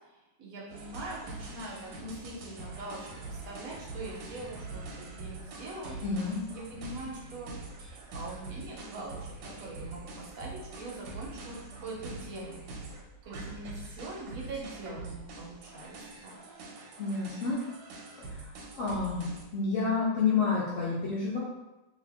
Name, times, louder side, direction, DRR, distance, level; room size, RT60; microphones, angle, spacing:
voice 1, 0.0-6.0 6.5-7.5 8.1-12.6 12.9-16.0 16.2-16.4, right 2 dB, 60° right, -3 dB, 1.0 m, -43 dB
sound 1, 0.7-19.5, right 3 dB, 90° right, 1.3 m, -44 dB
voice 2, 6.0-6.4 17.0-17.6 18.3-19.3 19.5-21.4, left 4 dB, 70° left, -6 dB, 0.7 m, -29 dB
2.8 x 2.5 x 3.4 m, 1.0 s
omnidirectional pair, 1.9 m